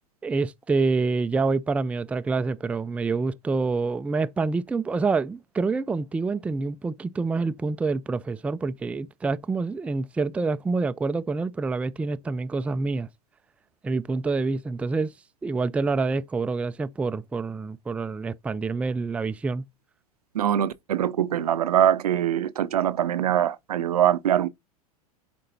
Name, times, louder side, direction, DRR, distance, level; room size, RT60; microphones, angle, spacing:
voice 1, 0.2-13.1 13.8-15.1 15.4-19.6, right 4 dB, 5° right, 0.3 m, -27 dB
voice 2, 20.3-24.5, right 10 dB, 75° right, 0.6 m, -23 dB
11.0 x 4.5 x 2.7 m
figure-of-eight pair, 85°, 20 cm